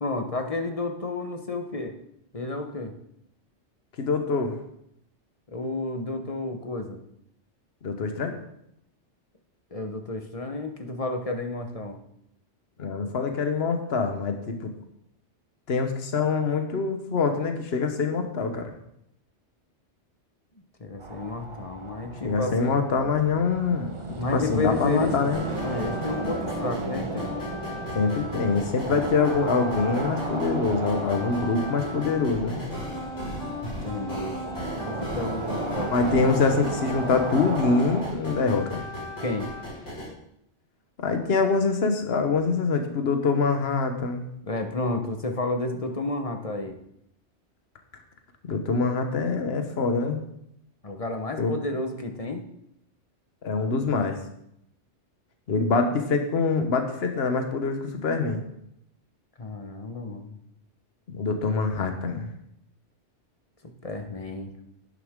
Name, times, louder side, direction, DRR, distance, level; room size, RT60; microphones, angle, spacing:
voice 1, 0.0-2.0 2.3-2.9 5.5-7.0 9.7-12.0 20.8-22.8 24.2-25.1 25.6-27.4 28.9-29.0 33.6-36.3 39.2-39.5 44.4-46.8 50.8-52.4 59.4-60.4 63.6-64.5, left 2 dB, 35° left, 5 dB, 1.0 m, -31 dB
voice 2, 4.0-4.6 7.8-8.4 12.8-14.7 15.7-18.7 22.2-23.9 24.3-25.4 27.9-32.6 35.9-38.8 41.0-44.3 48.5-50.2 51.4-51.5 53.4-54.2 55.5-58.4 61.1-62.3, left 4 dB, 60° left, 6 dB, 1.3 m, -25 dB
sound 1, 21.0-38.1, right 3 dB, 30° right, 0.9 m, -35 dB
sound 2, 25.3-40.1, left 2 dB, 80° left, 5.1 m, -36 dB
11.0 x 9.9 x 3.6 m, 0.76 s
omnidirectional pair, 1.2 m